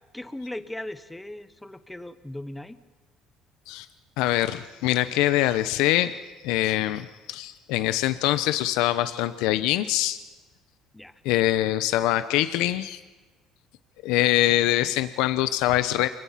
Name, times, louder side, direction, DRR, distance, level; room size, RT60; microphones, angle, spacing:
voice 1, 0.1-2.8 10.9-11.1, left 1 dB, 5° left, 12 dB, 1.1 m, -38 dB
voice 2, 4.2-6.1 6.4-10.2 11.2-13.0 14.0-16.1, left 14 dB, 85° left, 12 dB, 0.9 m, -24 dB
29.0 x 25.0 x 5.8 m, 1.3 s
cardioid pair, 140°, 0 cm